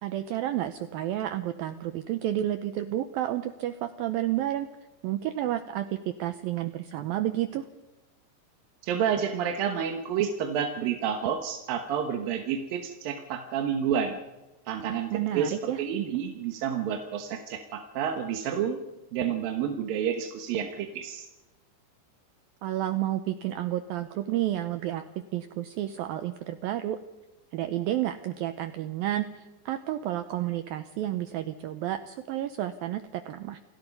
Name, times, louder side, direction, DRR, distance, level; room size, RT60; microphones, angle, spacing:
voice 1, 0.0-4.7 5.0-7.6 15.1-15.8 22.6-25.0 25.3-27.0 27.5-33.6, right 13 dB, 85° right, 11 dB, 2.1 m, -31 dB
voice 2, 8.8-14.2 14.7-18.8 19.1-21.3, right 8 dB, 65° right, 5 dB, 2.6 m, -29 dB
28.5 x 18.0 x 5.4 m, 1.1 s
omnidirectional pair, 5.2 m